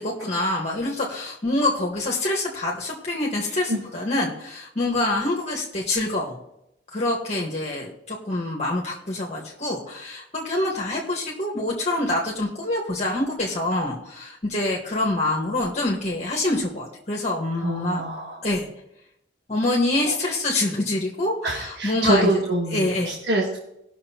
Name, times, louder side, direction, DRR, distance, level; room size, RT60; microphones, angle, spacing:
voice 1, 0.0-6.4 6.9-18.0 18.4-18.7 19.5-22.4 22.7-23.2, left 2 dB, 40° left, -2 dB, 1.5 m, -26 dB
voice 2, 17.6-18.4 20.0-20.1 21.4-23.6, right 1 dB, 65° right, -2 dB, 1.5 m, -25 dB
19.0 x 6.4 x 2.9 m, 0.83 s
head